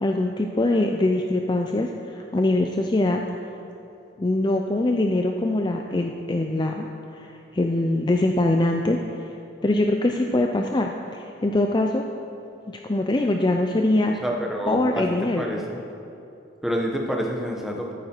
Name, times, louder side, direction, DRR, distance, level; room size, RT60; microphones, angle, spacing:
voice 1, 0.0-3.2 4.2-6.9 7.1-9.0 9.6-12.0 12.7-14.2 14.7-15.4, left 2 dB, 25° left, 3 dB, 0.4 m, -23 dB
voice 2, 14.2-15.8 16.6-17.9, equal, ahead, 0 dB, 1.0 m, -28 dB
13.5 x 8.9 x 4.4 m, 2.8 s
head